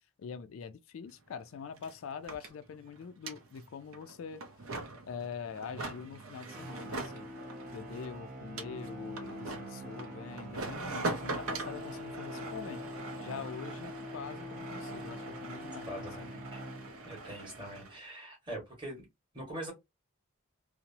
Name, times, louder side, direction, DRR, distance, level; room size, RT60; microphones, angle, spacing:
voice 1, 0.2-4.4 5.1-7.3 7.7-16.4, left 6 dB, 70° left, 0.3 m, -44 dB
sound 1, 1.1-1.2 1.4-18.0, right 2 dB, 75° right, 0.5 m, -43 dB
sound 2, 6.4-17.2, equal, 40° right, 0.7 m, -44 dB
voice 2, 15.9-16.2 16.5-16.6 17.0-19.0 19.3-19.7, right 1 dB, 20° right, 1.4 m, -42 dB
2.9 x 2.0 x 2.6 m
head